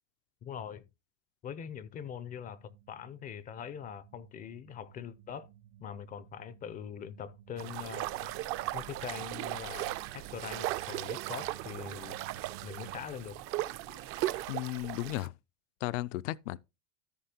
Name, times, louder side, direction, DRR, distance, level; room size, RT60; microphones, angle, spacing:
voice 1, 0.4-0.8 1.4-5.5 5.8-8.3 8.7-12.2 12.6-13.4, left 8 dB, 25° left, 0.4 m, -43 dB
sound 1, 2.0-13.1, right 14 dB, 65° right, 1.0 m, -54 dB
sound 2, 7.6-15.3, right 15 dB, 35° right, 0.4 m, -37 dB
voice 2, 13.9-15.3 15.8-16.6, left 17 dB, 75° left, 0.5 m, -36 dB
13.5 x 5.5 x 2.8 m
supercardioid pair, 135°, 38 cm